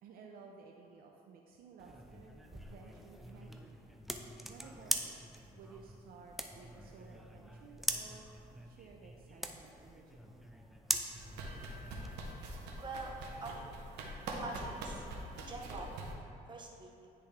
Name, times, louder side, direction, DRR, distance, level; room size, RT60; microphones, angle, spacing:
voice 1, 0.0-4.0 4.5-5.2 5.6-8.3 8.6-10.4, right 5 dB, 60° right, 1 dB, 0.5 m, -56 dB
sound 1, 1.8-12.2, equal, ahead, 0.4 m, -42 dB
sound 2, 11.1-16.1, right 1 dB, 85° right, 0.9 m, -44 dB
voice 2, 12.8-13.1 13.4-13.7 14.3-15.0 15.4-16.0 16.5-16.9, right 3 dB, 25° right, -1 dB, 0.9 m, -44 dB
10.0 x 3.4 x 3.3 m, 2.7 s
cardioid pair, 110°, 17 cm